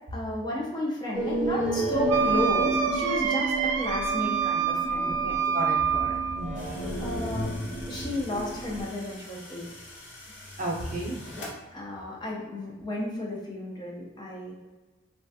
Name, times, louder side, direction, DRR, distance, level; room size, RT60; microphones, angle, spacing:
voice 1, 0.1-5.4 7.0-7.5 7.9-9.7 11.7-14.5, left 1 dB, 25° left, -3 dB, 0.5 m, -33 dB
sound 1, 1.1-8.8, right 2 dB, ahead, 0.8 m, -31 dB
Wind instrument woodwind instrument, 2.1-6.5, right 7 dB, 80° right, 0.3 m, -27 dB
voice 2, 5.5-6.7 10.6-11.2 12.1-12.2, right 1 dB, 45° right, -3 dB, 0.6 m, -33 dB
sound 2, 6.5-11.5, left 1 dB, 70° left, 0.7 m, -44 dB
3.1 x 2.3 x 2.6 m, 1.2 s
head